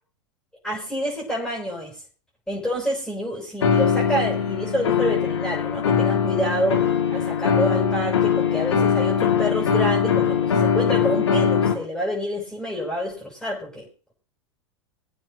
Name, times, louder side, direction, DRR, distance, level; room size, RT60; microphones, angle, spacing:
voice 1, 0.6-2.0 2.5-14.1, equal, 5° left, -4 dB, 6.6 m, -28 dB
sound 1, 3.6-11.8, left 7 dB, 75° left, 2.0 m, -21 dB
24.0 x 9.0 x 2.8 m, 0.37 s
hypercardioid pair, 95°, 15 cm